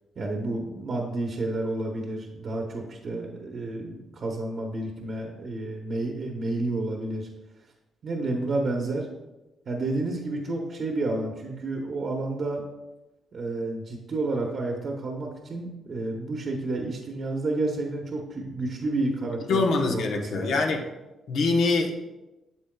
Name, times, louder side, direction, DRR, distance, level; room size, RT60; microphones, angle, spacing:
voice 1, 0.2-7.3 8.0-9.1 9.7-12.6 13.3-19.6 19.9-20.6, right 2 dB, 50° right, 1 dB, 1.0 m, -30 dB
voice 2, 19.5-20.8 21.3-22.1, left 3 dB, 75° left, 2 dB, 1.0 m, -24 dB
8.5 x 7.0 x 2.3 m, 1.0 s
cardioid pair, 95°, 0 cm